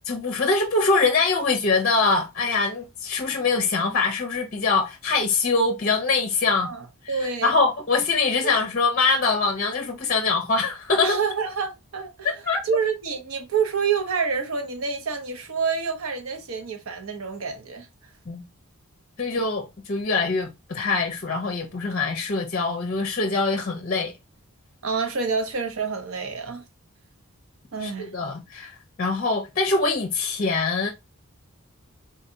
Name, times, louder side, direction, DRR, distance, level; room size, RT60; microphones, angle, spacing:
voice 1, 0.1-6.7 7.4-11.2 12.5-12.6 18.3-18.4 19.2-24.1 27.8-30.9, left 4 dB, 40° left, 0.6 m, -23 dB
voice 2, 6.6-7.5 8.4-8.6 11.0-12.4 12.6-17.9 24.8-26.6 27.7-28.1, right 5 dB, 70° right, 0.7 m, -28 dB
3.8 x 2.7 x 2.6 m
head